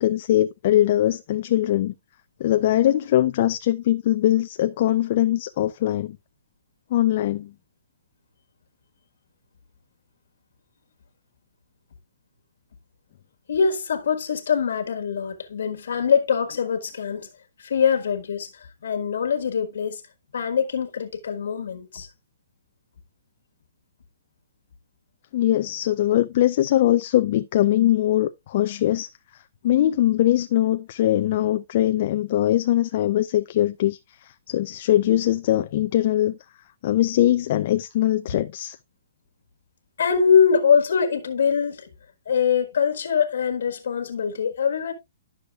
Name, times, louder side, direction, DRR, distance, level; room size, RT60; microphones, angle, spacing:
voice 1, 0.0-1.9 2.4-6.2 6.9-7.5 25.3-29.1 29.6-36.4 36.8-38.8, left 13 dB, 40° left, 0.4 m, -21 dB
voice 2, 13.5-17.3 17.6-20.0 20.3-22.1 38.3-38.4 40.0-41.9 42.2-44.9, left 6 dB, 75° left, 1.5 m, -23 dB
12.0 x 6.4 x 2.4 m
hypercardioid pair, 165°, 0 cm